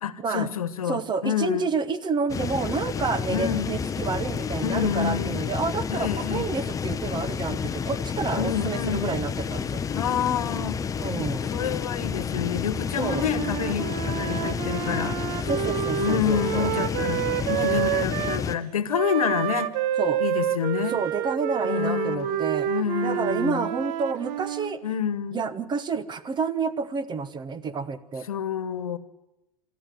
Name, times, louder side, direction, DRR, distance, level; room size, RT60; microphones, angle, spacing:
voice 1, 0.0-1.7 3.3-3.7 4.6-5.4 5.9-6.5 8.4-9.2 9.9-10.8 11.5-15.4 16.0-19.7 20.2-21.0 21.6-23.7 24.8-25.4 28.3-29.0, left 8 dB, 85° left, 14 dB, 1.3 m, -28 dB
voice 2, 0.9-9.8 11.0-11.5 13.0-13.3 15.5-16.7 20.0-20.2 20.9-22.7 23.0-24.8 25.3-28.3, right 5 dB, 25° right, 14 dB, 1.2 m, -29 dB
sound 1, 2.3-18.6, left 6 dB, 20° left, 0.8 m, -30 dB
Wind instrument woodwind instrument, 13.0-18.4 18.9-24.8, right 12 dB, 50° right, 0.9 m, -29 dB
23.5 x 13.5 x 9.3 m, 0.95 s
hypercardioid pair, 100°, 18 cm